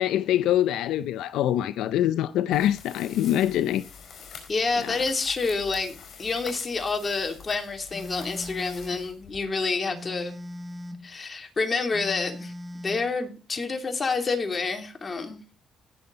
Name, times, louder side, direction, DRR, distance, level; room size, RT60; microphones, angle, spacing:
voice 1, 0.0-3.9 4.8-5.0, left 12 dB, 90° left, 0.5 m, -24 dB
sound 1, 2.5-9.7, left 6 dB, 65° left, 5.0 m, -46 dB
voice 2, 4.5-10.4 11.0-15.4, left 4 dB, 35° left, 2.9 m, -28 dB
Telephone, 7.9-9.1 9.9-11.1 11.9-13.1, left 1 dB, 10° right, 2.3 m, -39 dB
18.0 x 7.0 x 4.0 m
cardioid pair, 90°, 0 cm